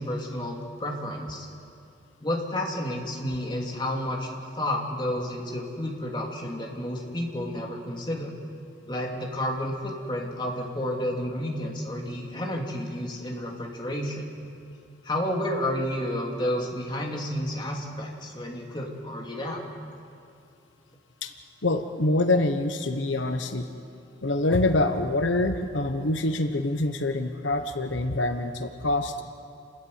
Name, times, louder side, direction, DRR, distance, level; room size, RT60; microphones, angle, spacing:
voice 1, 0.0-1.5 2.2-4.3 4.6-8.3 8.9-14.2 15.0-19.6, left 1 dB, 25° left, -1 dB, 2.8 m, -31 dB
voice 2, 21.6-23.7 24.2-29.2, left 2 dB, 90° left, 7 dB, 1.1 m, -25 dB
29.0 x 13.5 x 9.5 m, 2.4 s
head